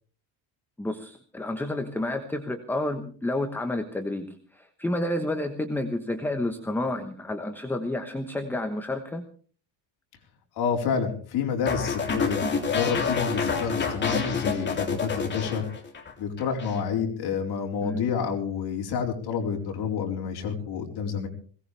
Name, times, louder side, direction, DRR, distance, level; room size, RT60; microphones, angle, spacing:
voice 1, 0.8-9.3 17.8-18.1, left 1 dB, 5° left, 5 dB, 1.1 m, -30 dB
voice 2, 10.6-15.6 16.2-21.3, left 6 dB, 60° left, 1 dB, 4.3 m, -29 dB
sound 1, 11.7-16.1 16.4-16.8, left 5 dB, 25° left, 3.3 m, -28 dB
21.5 x 18.0 x 3.4 m, 0.43 s
cardioid pair, 160°, 43 cm